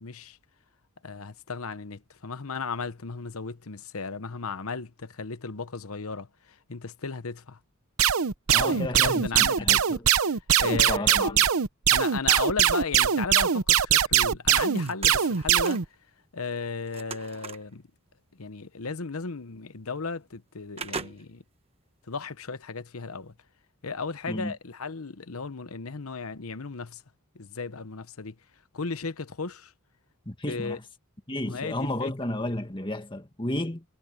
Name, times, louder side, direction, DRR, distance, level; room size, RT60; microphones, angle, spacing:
voice 1, 0.0-0.4 1.0-7.6 8.5-11.5 11.9-15.9 16.3-17.9 18.3-21.4 22.1-23.3 23.8-27.0 27.3-28.3 28.7-29.7 30.5-30.8 31.4-32.1, left 4 dB, 90° left, 1.0 m, -35 dB
sound 1, 8.0-15.8, right 9 dB, 85° right, 0.8 m, -22 dB
voice 2, 8.5-10.0 10.7-11.4 24.3-24.5 30.3-30.8 31.3-33.8, left 1 dB, 25° left, 1.9 m, -32 dB
sound 2, 14.4-16.0 16.4-17.7 18.9-19.0 19.4-19.5 20.0-20.4 20.8-21.6 22.0-22.1, right 4 dB, 25° right, 1.1 m, -40 dB
head